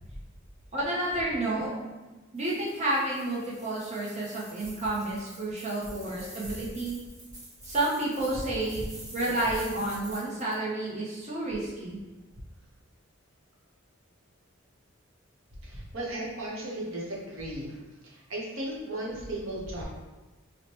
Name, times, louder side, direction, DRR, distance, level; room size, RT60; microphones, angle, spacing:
voice 1, 0.7-1.7 2.3-7.0 7.6-8.8 9.1-12.0, right 2 dB, 35° right, -5 dB, 0.7 m, -30 dB
sound 1, 2.4-10.6, right 1 dB, 15° right, 1.1 m, -47 dB
voice 2, 15.6-19.8, right 1 dB, 80° right, -4 dB, 0.9 m, -36 dB
4.5 x 2.1 x 2.9 m, 1.2 s
head